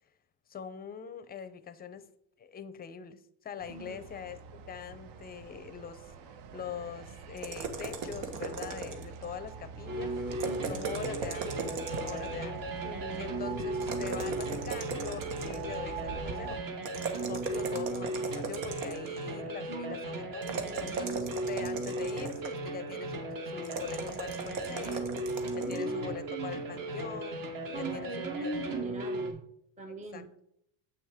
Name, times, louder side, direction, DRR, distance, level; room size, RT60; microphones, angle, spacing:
voice 1, 0.5-2.1 2.4-6.1 6.5-10.1 10.7-12.6 13.2-16.6 17.2-27.4 27.7-28.7 30.1-30.2, left 7 dB, 20° left, 13 dB, 0.5 m, -43 dB
sound 1, 3.6-16.6, right 6 dB, 65° right, 0.9 m, -44 dB
voice 2, 3.7-4.1 10.4-11.2 12.8-13.3 19.7-20.0 20.5-21.1 25.6-26.8 27.7-29.4 29.8-30.3, right 3 dB, 15° right, 4 dB, 0.7 m, -41 dB
sound 2, 7.4-9.2 10.3-12.3 13.8-15.8 16.8-19.2 20.4-22.6 23.6-25.8, right 5 dB, 85° right, 1.4 m, -38 dB
sound 3, 9.9-29.3, right 2 dB, 45° right, 1.6 m, -36 dB
8.1 x 6.3 x 3.5 m, 0.73 s
cardioid pair, 130°, 44 cm